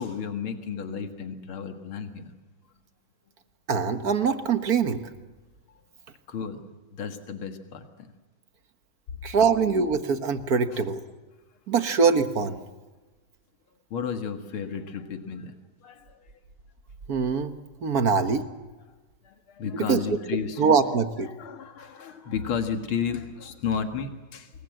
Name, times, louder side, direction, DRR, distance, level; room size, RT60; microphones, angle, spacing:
voice 1, 0.0-2.3 5.7-5.8 6.3-6.6 6.9-7.8 10.7-10.8 13.9-15.6 15.8-16.2 17.9-18.3 19.2-20.7 21.3-24.5, left 6 dB, 85° left, 6 dB, 2.6 m, -33 dB
voice 2, 3.7-5.0 9.2-11.0 11.7-12.6 17.1-17.5 17.8-18.5 19.7-21.3, right 5 dB, 50° right, 9 dB, 1.7 m, -23 dB
26.5 x 22.0 x 7.8 m, 1.2 s
omnidirectional pair, 2.2 m